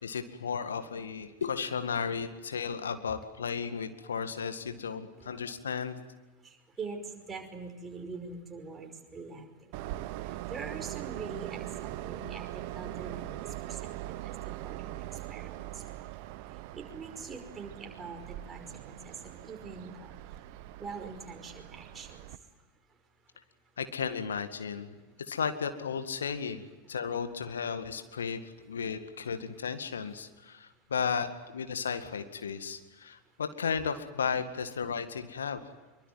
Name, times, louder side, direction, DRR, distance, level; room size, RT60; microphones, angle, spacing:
voice 1, 0.0-6.0 23.8-24.9 25.3-35.6, left 6 dB, 70° left, 9 dB, 2.0 m, -34 dB
voice 2, 6.8-9.5 10.5-11.7 12.0-12.4 12.7-14.2 14.6-15.6 16.7-19.1 19.4-20.1 20.8-22.1, right 4 dB, 15° right, 4 dB, 5.4 m, -43 dB
Train, 9.7-22.4, right 15 dB, 45° right, 1.1 m, -41 dB
26.0 x 24.0 x 9.5 m, 1.2 s
figure-of-eight pair, 90°, 0 cm